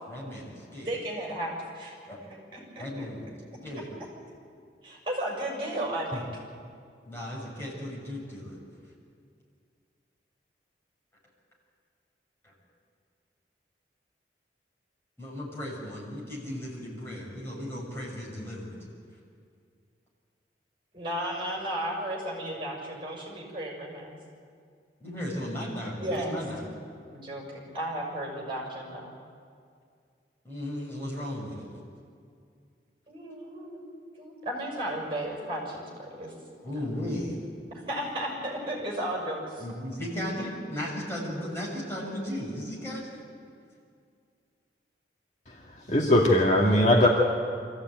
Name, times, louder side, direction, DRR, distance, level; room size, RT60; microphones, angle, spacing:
voice 1, 0.1-0.9 2.1-2.2 2.8-3.3 3.6-3.9 6.1-6.2 7.0-8.6 12.4-12.5 15.2-18.8 25.0-26.6 30.4-31.7 36.6-37.4 39.6-43.2, left 1 dB, 15° left, -5 dB, 6.7 m, -35 dB
voice 2, 0.8-1.9 2.5-3.0 4.8-6.2 20.9-24.2 25.8-26.4 27.1-29.1 33.1-36.3 37.7-39.6, right 1 dB, 30° right, -1 dB, 6.3 m, -34 dB
voice 3, 45.9-47.1, left 1 dB, 40° left, -2 dB, 2.2 m, -20 dB
25.0 x 15.0 x 9.2 m, 2.3 s
head